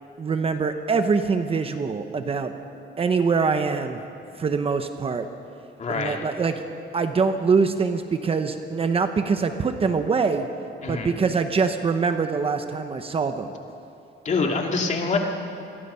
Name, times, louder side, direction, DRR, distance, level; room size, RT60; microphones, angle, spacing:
voice 1, 0.2-2.5 3.0-4.0 4.4-5.3 5.9-6.6 6.9-10.5 10.9-13.5, right 5 dB, 30° right, 7 dB, 0.9 m, -24 dB
voice 2, 5.8-6.2 10.8-11.2 14.2-15.2, left 4 dB, 40° left, 1 dB, 2.5 m, -25 dB
27.5 x 21.0 x 5.7 m, 2.6 s
cardioid pair, 175°, 19 cm